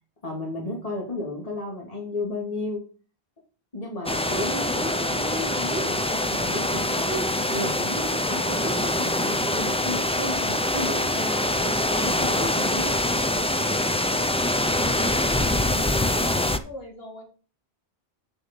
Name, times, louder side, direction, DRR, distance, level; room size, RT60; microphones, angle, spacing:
voice 1, 0.2-2.9 3.7-12.9, left 1 dB, 35° left, -1 dB, 2.4 m, -33 dB
sound 1, 4.1-16.6, left 1 dB, 10° left, 0.3 m, -24 dB
voice 2, 15.7-17.2, left 2 dB, 65° left, -1 dB, 3.0 m, -41 dB
7.8 x 6.8 x 5.3 m, 0.38 s
omnidirectional pair, 1.1 m